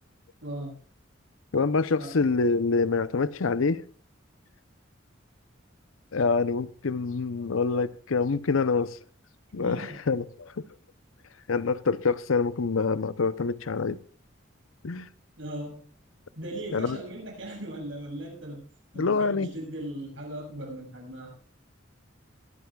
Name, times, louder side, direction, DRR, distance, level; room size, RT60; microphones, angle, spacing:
voice 1, 0.4-0.8 2.0-2.1 9.6-10.0 15.4-15.9 16.4-18.7 18.9-21.3, right 1 dB, 70° right, 7.1 m, -38 dB
voice 2, 1.5-3.8 6.1-9.0 9.5-10.5 11.5-14.0 14.8-15.1 16.7-17.0 18.9-19.5, left 4 dB, 90° left, 0.7 m, -26 dB
22.5 x 12.5 x 2.4 m
head